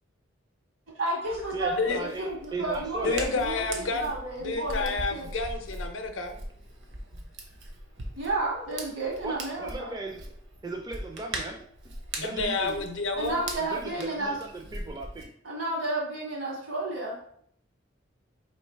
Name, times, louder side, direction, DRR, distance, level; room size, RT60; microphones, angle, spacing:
voice 1, 1.0-5.3 8.2-9.9 13.2-14.4 15.4-17.4, right 2 dB, 85° right, -2 dB, 1.7 m, -32 dB
Hands, 1.2-15.2, right 1 dB, 65° right, 0.8 m, -40 dB
voice 2, 1.5-3.3 9.2-10.4 10.6-11.6 12.1-12.8 13.1-13.2 13.6-15.3, right 3 dB, 20° right, 3 dB, 0.4 m, -37 dB
voice 3, 3.0-4.1 4.4-6.4 12.2-13.4, left 3 dB, 70° left, 6 dB, 0.6 m, -29 dB
3.2 x 2.9 x 4.4 m, 0.65 s
head